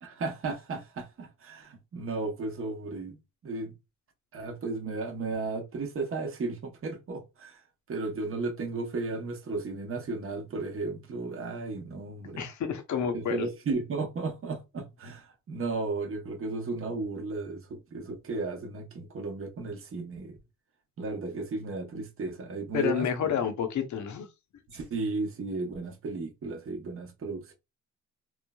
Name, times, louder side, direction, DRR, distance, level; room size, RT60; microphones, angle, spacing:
voice 1, 0.0-3.2 3.4-3.7 4.3-7.6 7.9-12.5 13.1-20.4 21.0-23.4 24.7-27.5, right 3 dB, 40° right, 0.8 m, -34 dB
voice 2, 12.4-13.5 22.7-24.3, left 8 dB, 60° left, 0.7 m, -29 dB
3.1 x 2.0 x 2.2 m
cardioid pair, 70°, 32 cm